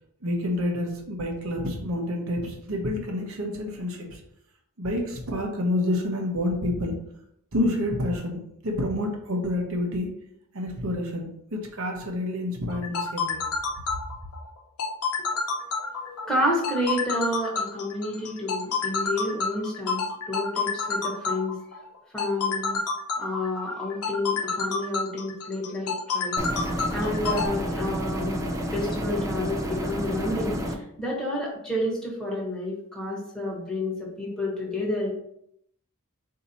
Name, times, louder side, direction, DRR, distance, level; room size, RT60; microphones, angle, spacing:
voice 1, 0.2-4.2 4.8-7.0 7.5-10.1 10.5-13.4, left 1 dB, 65° right, 2 dB, 0.9 m, -28 dB
sound 1, 12.7-27.5, left 4 dB, 80° left, 0.7 m, -29 dB
voice 2, 16.0-21.6 22.1-22.8 23.2-28.4 28.7-35.1, left 1 dB, 5° left, -5 dB, 1.0 m, -30 dB
sound 2, 26.4-30.8, equal, 15° right, 0.5 m, -30 dB
4.1 x 2.8 x 4.1 m, 0.74 s
head